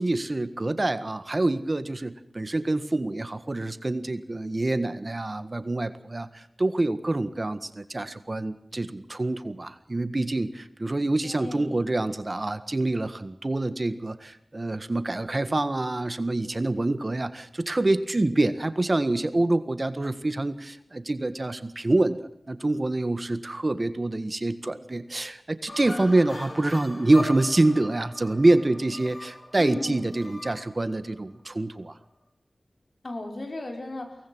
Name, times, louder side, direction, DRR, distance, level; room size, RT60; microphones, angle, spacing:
voice 1, 0.0-31.9, right 2 dB, 40° right, 12 dB, 1.6 m, -26 dB
voice 2, 11.2-11.8 29.6-30.1 33.0-34.2, left 2 dB, 60° left, 4 dB, 5.3 m, -35 dB
sound 1, 25.7-31.3, left 1 dB, 45° left, 4.2 m, -40 dB
24.0 x 19.0 x 6.3 m, 0.76 s
wide cardioid pair, 55°, 0 cm